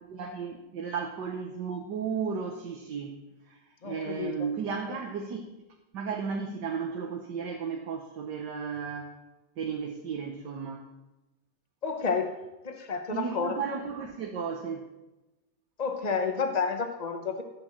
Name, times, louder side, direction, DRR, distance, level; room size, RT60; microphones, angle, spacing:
voice 1, 0.0-5.4 5.9-9.1 9.6-10.9 13.1-14.9, right 6 dB, 60° right, 2 dB, 1.6 m, -34 dB
voice 2, 3.8-4.5 11.8-12.3 12.6-13.8 15.8-17.4, left 5 dB, 55° left, 4 dB, 0.4 m, -30 dB
15.5 x 5.2 x 7.4 m, 1.0 s
omnidirectional pair, 2.2 m